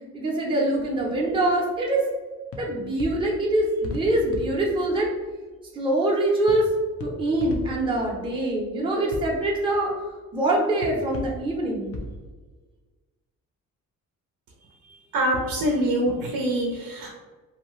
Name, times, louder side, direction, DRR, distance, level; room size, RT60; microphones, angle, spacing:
voice 1, 0.1-2.0 2.6-5.1 5.7-6.7 7.0-9.9 10.3-11.9, right 1 dB, 15° right, -3 dB, 0.6 m, -24 dB
sound 1, 0.7-1.8 2.5-5.7 6.5-12.3, left 1 dB, 40° left, 0.6 m, -39 dB
voice 2, 14.8-17.2, right 1 dB, 70° right, 0 dB, 0.6 m, -25 dB
2.7 x 2.1 x 3.0 m, 1.3 s
cardioid pair, 95°, 35 cm